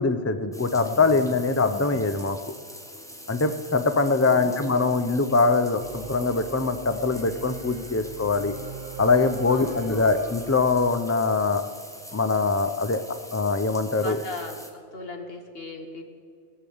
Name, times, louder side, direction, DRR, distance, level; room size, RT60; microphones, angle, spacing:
voice 1, 0.0-2.4 3.3-8.5 9.0-11.6 12.1-13.0 13.3-14.2, left 3 dB, 20° left, 10 dB, 0.4 m, -23 dB
sound 1, 0.5-14.7, equal, 5° left, 1.2 m, -44 dB
voice 2, 4.2-4.8 9.5-10.2 14.0-14.6 14.9-16.0, left 3 dB, 55° left, 5 dB, 1.7 m, -37 dB
Singing / Musical instrument, 5.8-10.9, right 6 dB, 50° right, 1.4 m, -40 dB
19.0 x 6.7 x 8.6 m, 2.2 s
omnidirectional pair, 1.2 m